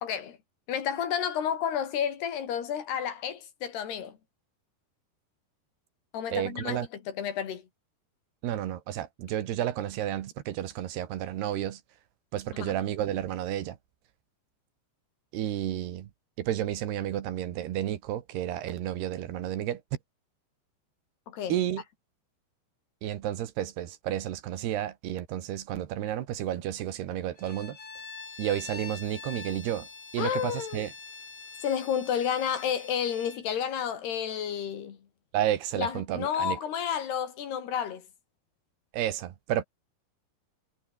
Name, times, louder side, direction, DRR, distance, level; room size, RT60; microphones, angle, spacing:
voice 1, 0.0-0.4 0.7-4.2 6.1-7.6 12.5-12.7 21.3-21.5 30.2-30.8 31.6-35.0 35.8-38.1, left 8 dB, 70° left, 4.8 m, -31 dB
voice 2, 6.3-6.9 8.4-11.8 12.3-13.8 15.3-16.1 16.4-19.8 21.5-21.8 23.0-27.8 28.4-29.9 30.1-30.9 35.3-36.6 38.9-39.6, right 12 dB, 75° right, 3.5 m, -31 dB
Bowed string instrument, 27.4-33.4, left 4 dB, 40° left, 5.9 m, -45 dB
omnidirectional pair, 4.9 m